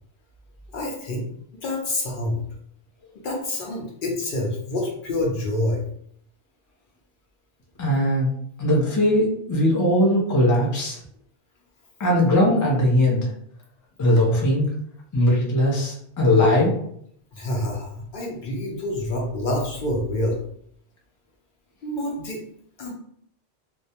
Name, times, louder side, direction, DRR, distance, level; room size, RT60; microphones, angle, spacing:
voice 1, 0.7-1.3 1.6-2.4 3.2-5.8 17.3-20.4 21.8-22.4 22.8-22.9, left 1 dB, 60° left, -1 dB, 0.7 m, -27 dB
voice 2, 7.8-8.3 8.6-11.0 12.0-13.2 14.0-14.7 15.1-16.8, left 1 dB, 30° left, -3 dB, 0.3 m, -19 dB
2.2 x 2.1 x 2.7 m, 0.67 s
omnidirectional pair, 1.1 m